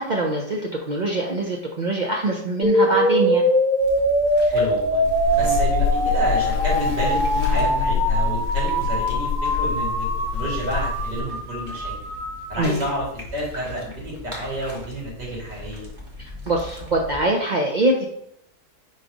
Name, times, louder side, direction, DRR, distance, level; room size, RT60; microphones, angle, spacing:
voice 1, 0.0-3.4 12.6-12.8 16.5-18.1, right 2 dB, 60° right, 0 dB, 0.4 m, -23 dB
sound 1, 2.6-12.6, equal, ahead, 1.0 m, -23 dB
sound 2, 3.8-17.3, left 1 dB, 30° right, 1.3 m, -40 dB
voice 2, 4.4-5.0 5.4-12.1 12.5-15.9, right 1 dB, 85° right, -5 dB, 3.1 m, -30 dB
Buzz, 5.0-11.2, left 6 dB, 75° left, 1.1 m, -25 dB
4.8 x 4.3 x 5.1 m, 0.71 s
omnidirectional pair, 1.8 m